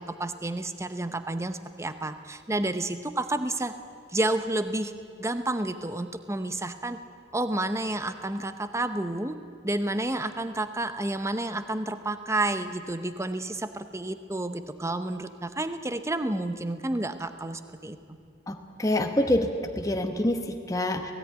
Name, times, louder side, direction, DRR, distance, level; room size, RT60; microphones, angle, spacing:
voice 1, 0.0-3.7 4.1-4.9 5.2-7.0 7.3-9.4 9.6-18.2, right 2 dB, 15° right, 10 dB, 0.8 m, -30 dB
voice 2, 18.5-21.1, left 1 dB, 15° left, 4 dB, 1.1 m, -26 dB
17.5 x 17.0 x 9.4 m, 2.4 s
head